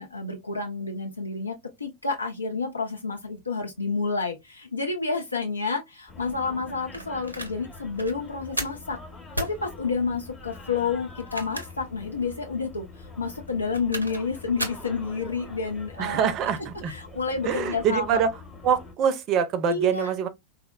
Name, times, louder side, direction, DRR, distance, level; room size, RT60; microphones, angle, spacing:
voice 1, 0.0-9.0 9.4-16.3 16.9-18.2 19.7-20.1, left 4 dB, 80° left, 0.4 m, -30 dB
sound 1, 6.1-18.9, left 3 dB, 15° left, 0.8 m, -44 dB
sound 2, 6.9-7.5 8.0-8.1 8.6-8.8 9.3-9.6 11.1-11.9 12.3-12.4 13.5-14.2 14.6-14.9, right 1 dB, 85° right, 0.6 m, -33 dB
voice 2, 16.0-16.9 17.4-18.3 18.6-20.3, right 7 dB, 35° right, 0.5 m, -24 dB
3.6 x 2.0 x 2.2 m
figure-of-eight pair, 90°, 0 cm